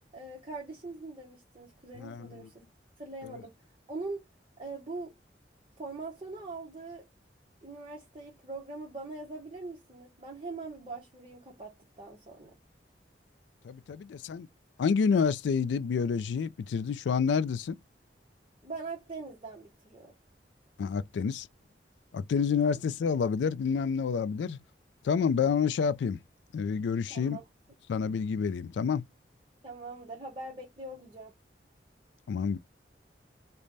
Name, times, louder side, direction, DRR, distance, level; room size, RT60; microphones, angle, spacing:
voice 1, 0.1-2.5 3.0-3.5 3.9-4.3 4.6-5.1 5.8-7.1 7.6-12.5 18.6-20.1 22.7-22.8 27.1-27.4 29.6-31.3, right 3 dB, 30° right, 0.9 m, -42 dB
voice 2, 2.0-2.5 3.2-3.4 13.6-14.5 14.8-17.8 20.8-21.5 22.1-24.6 25.0-26.2 26.5-27.4 27.9-29.0 32.3-32.6, left 6 dB, 80° left, 0.3 m, -28 dB
3.2 x 2.1 x 3.9 m
head